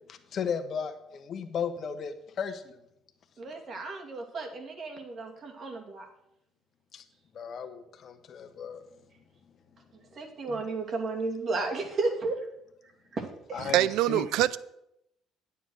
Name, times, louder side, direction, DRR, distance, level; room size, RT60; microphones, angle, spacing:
voice 1, 0.1-2.7 6.9-7.0 7.3-8.8 13.5-14.2, left 7 dB, 55° left, 1.1 m, -35 dB
voice 2, 3.4-6.1 10.1-12.4 13.1-13.2 13.5-13.7, right 3 dB, 50° right, 2.4 m, -33 dB
voice 3, 13.7-14.6, right 14 dB, 75° right, 0.4 m, -24 dB
9.5 x 7.1 x 6.4 m
supercardioid pair, 70°, 0 cm